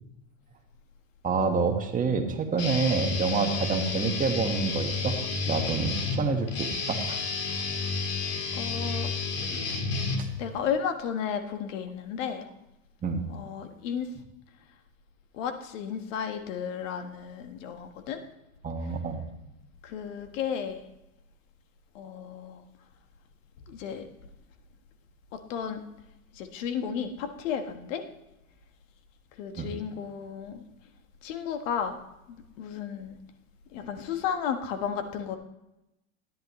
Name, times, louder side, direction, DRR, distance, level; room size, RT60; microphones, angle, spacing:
voice 1, 1.2-5.2 5.4-7.2 7.5-7.6 13.0-13.2 18.6-19.3 29.6-29.7, right 5 dB, 20° right, 3 dB, 1.6 m, -28 dB
Guitar, 2.6-10.6, left 4 dB, 40° left, 1.9 m, -31 dB
voice 2, 8.5-9.1 10.4-12.5 13.3-14.1 15.3-18.2 18.8-18.9 19.8-20.9 21.9-22.6 23.7-24.1 25.3-25.8 26.3-28.0 29.4-30.6 31.2-32.0 32.3-33.2 33.7-35.4, left 7 dB, 70° left, 7 dB, 1.5 m, -33 dB
13.0 x 11.0 x 3.1 m, 0.90 s
supercardioid pair, 120°, 39 cm